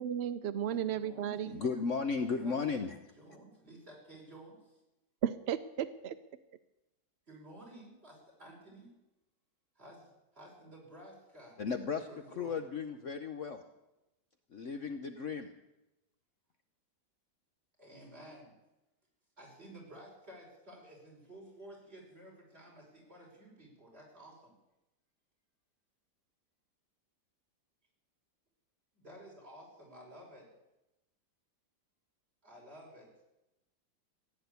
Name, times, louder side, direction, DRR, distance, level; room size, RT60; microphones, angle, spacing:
voice 1, 0.0-1.6 5.2-5.9, right 9 dB, 75° right, 0.5 m, -34 dB
voice 2, 0.7-1.7 2.1-2.2 2.4-2.6 3.1-4.8 7.3-8.9 9.8-11.6 12.1-12.6 17.8-18.5 19.4-24.5 28.9-30.5 32.4-33.1, right 1 dB, 35° right, 5.7 m, -53 dB
voice 3, 1.5-3.0 11.6-13.6 14.5-15.5, left 5 dB, 55° left, 1.0 m, -35 dB
16.0 x 9.7 x 8.2 m
omnidirectional pair, 1.9 m